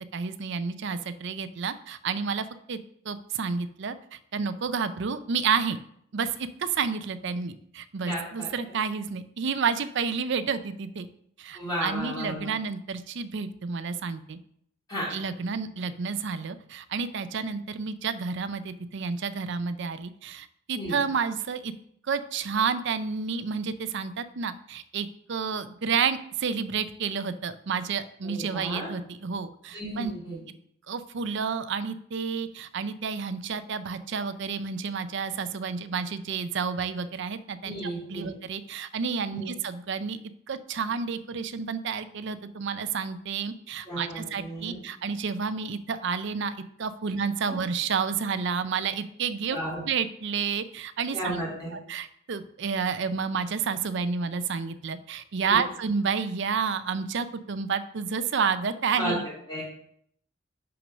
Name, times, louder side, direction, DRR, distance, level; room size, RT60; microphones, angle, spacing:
voice 1, 0.1-2.8 3.0-5.8 6.1-11.1 11.4-14.4 15.1-21.7 22.1-30.1 30.9-37.7 38.1-40.2 40.5-49.6 49.9-51.4 51.7-59.2, right 5 dB, 65° right, 12 dB, 0.5 m, -30 dB
voice 2, 8.1-8.5 11.5-12.5 14.9-15.1 20.7-21.0 28.2-28.9 29.7-30.4 37.6-38.3 39.3-39.5 43.9-44.8 49.5-49.8 51.1-51.7 55.5-55.6 59.0-59.2 59.5-59.6, equal, 20° left, -9 dB, 2.3 m, -33 dB
6.1 x 6.0 x 5.2 m, 0.69 s
head